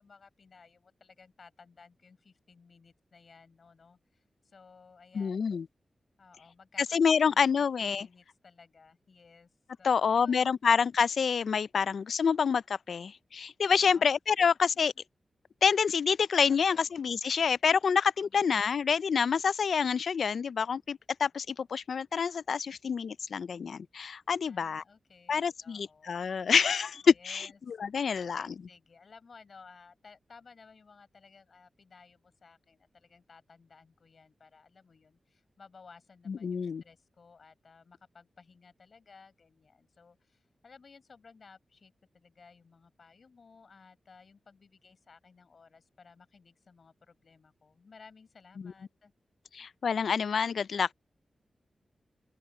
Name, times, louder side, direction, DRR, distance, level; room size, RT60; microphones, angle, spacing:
voice 1, 0.0-5.6 6.2-7.0 7.2-7.5 7.8-9.5 9.8-10.6 13.7-14.0 16.5-16.9 18.2-18.5 24.4-26.2 27.1-27.6 28.2-49.1, left 5 dB, 50° left, 5.1 m, -57 dB
voice 2, 5.1-5.7 6.9-8.1 9.8-14.9 15.6-24.8 25.3-28.6 36.3-36.8 49.5-50.9, left 6 dB, 75° left, 0.4 m, -27 dB
open air
wide cardioid pair, 140°, 0 cm